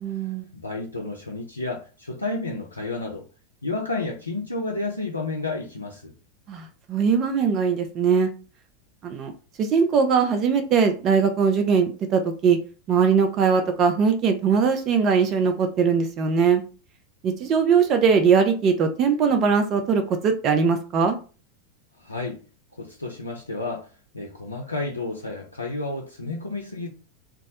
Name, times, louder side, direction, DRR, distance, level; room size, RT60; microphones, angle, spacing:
voice 1, 0.0-0.5 6.5-8.3 9.0-9.3 9.6-12.6 12.9-16.6 17.2-21.2, right 6 dB, 40° right, 6 dB, 0.4 m, -21 dB
voice 2, 0.5-3.2 3.6-6.1 22.0-22.4 22.8-23.9 24.1-26.9, left 2 dB, 90° left, -1 dB, 0.4 m, -31 dB
2.2 x 2.0 x 2.7 m, 0.36 s
figure-of-eight pair, 90°, 0 cm